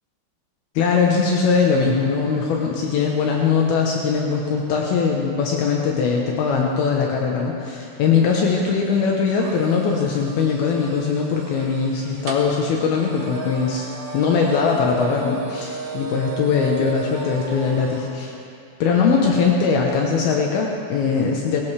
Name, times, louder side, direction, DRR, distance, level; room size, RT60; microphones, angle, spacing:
voice 1, 0.8-13.8 14.1-18.3 18.8-21.6, left 5 dB, 75° left, 0 dB, 2.3 m, -21 dB
sound 1, 9.4-18.1, right 3 dB, 65° right, 2.7 m, -34 dB
20.5 x 17.5 x 3.4 m, 2.6 s
omnidirectional pair, 5.7 m